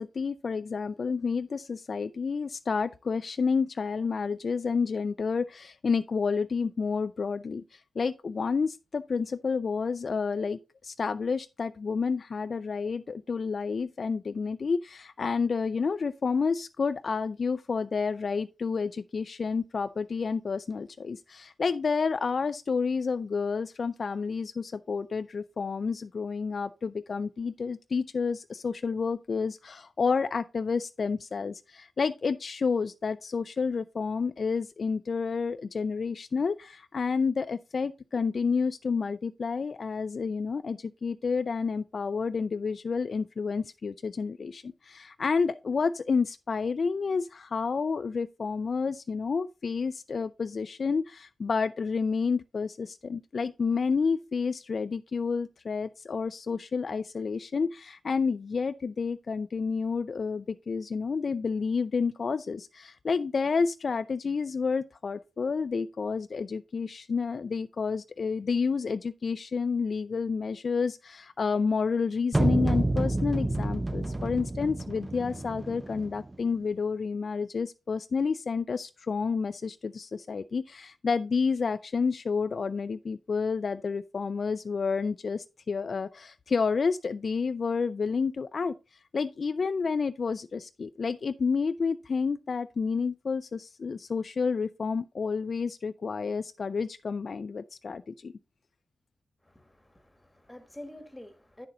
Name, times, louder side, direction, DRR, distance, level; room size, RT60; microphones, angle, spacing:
voice 1, 0.0-88.7 89.1-98.3, left 5 dB, 55° left, 0.3 m, -30 dB
sound 1, 72.3-76.4, right 2 dB, 20° right, 0.4 m, -29 dB
voice 2, 99.4-101.7, left 1 dB, 10° left, 1.4 m, -47 dB
9.0 x 6.7 x 3.8 m
wide cardioid pair, 95°, 0 cm